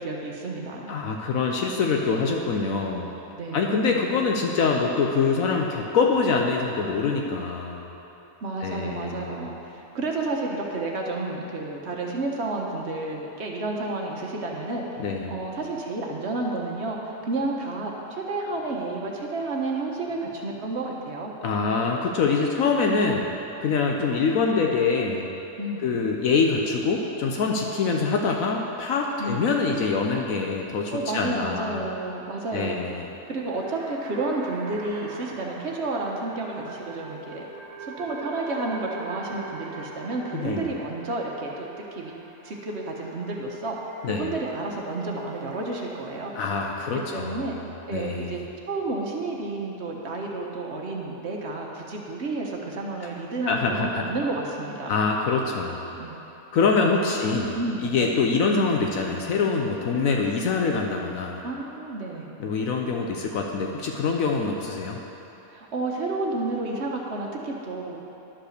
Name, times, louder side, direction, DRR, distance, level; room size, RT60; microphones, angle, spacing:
voice 1, 0.0-0.9 3.3-4.0 8.4-14.8 15.3-21.3 25.6-25.9 29.2-29.5 30.9-32.8 33.3-37.4 37.8-42.2 42.4-43.8 44.1-46.4 46.9-47.6 47.9-48.4 48.7-54.9 55.9-56.2 56.8-57.2 57.6-58.1 61.4-62.3 65.5-68.0, right 2 dB, 55° right, 0 dB, 1.2 m, -31 dB
voice 2, 0.9-3.1 3.5-7.9 8.6-9.5 15.0-15.3 21.4-23.3 23.6-25.3 25.8-31.8 32.5-33.1 40.3-40.7 44.0-44.3 46.3-47.6 47.9-48.4 53.5-54.0 54.9-55.9 56.5-61.4 62.4-65.0, left 4 dB, 75° left, 1 dB, 1.1 m, -25 dB
sound 1, 33.1-46.5, right 3 dB, 75° right, 1.3 m, -43 dB
11.5 x 5.3 x 6.5 m, 3.0 s
omnidirectional pair, 1.5 m